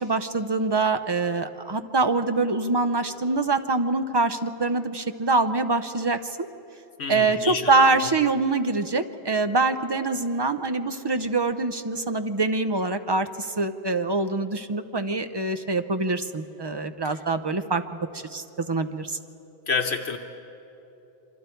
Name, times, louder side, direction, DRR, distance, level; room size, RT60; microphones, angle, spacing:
voice 1, 0.0-6.5 7.1-19.2, right 3 dB, 25° right, 10 dB, 0.6 m, -25 dB
voice 2, 7.0-8.1 17.0-17.2 19.7-20.2, left 5 dB, 70° left, 5 dB, 1.2 m, -29 dB
27.5 x 25.0 x 4.6 m, 3.0 s
omnidirectional pair, 1.1 m